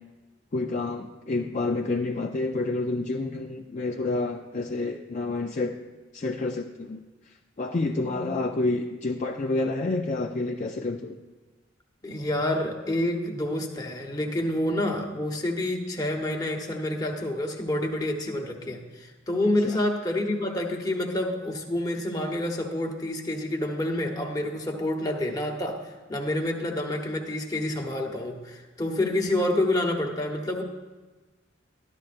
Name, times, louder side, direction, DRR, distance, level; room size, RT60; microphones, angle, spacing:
voice 1, 0.5-5.8 6.1-7.0 7.6-11.2 19.6-19.8, left 2 dB, 35° left, 2 dB, 0.4 m, -29 dB
voice 2, 8.0-8.3 12.0-30.6, left 1 dB, 20° left, 1 dB, 1.0 m, -28 dB
13.5 x 11.5 x 2.5 m, 1.3 s
head